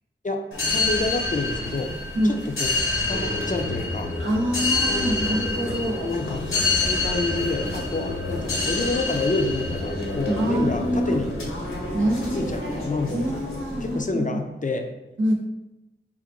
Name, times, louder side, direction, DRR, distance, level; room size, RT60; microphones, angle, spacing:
voice 1, 0.2-1.9 2.5-4.1 6.0-11.5 12.3-13.2 13.8-14.9, left 3 dB, 40° left, 4 dB, 0.5 m, -28 dB
sound 1, 0.5-14.0, left 2 dB, 75° left, 0.9 m, -27 dB
voice 2, 2.2-2.5 4.2-6.1 10.3-11.2 11.9-12.8 13.1-14.4 15.2-15.3, equal, 70° right, -2 dB, 0.8 m, -25 dB
3.8 x 2.1 x 4.4 m, 0.98 s
cardioid pair, 40°, 21 cm